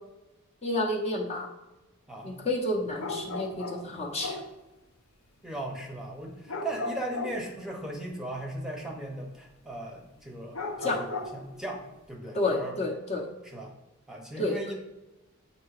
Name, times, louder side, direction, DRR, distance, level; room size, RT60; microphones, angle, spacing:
voice 1, 0.6-1.5 2.2-4.4 10.8-11.0 12.3-13.3 14.4-14.7, left 2 dB, 30° left, 0 dB, 0.9 m, -30 dB
voice 2, 2.1-2.4 5.4-12.8 13.4-13.7 14.1-14.7, right 1 dB, ahead, 0 dB, 0.9 m, -38 dB
sound 1, 3.0-4.5 6.5-7.5 10.5-11.5, left 3 dB, 75° left, 0.9 m, -35 dB
8.4 x 2.8 x 4.8 m, 1.0 s
head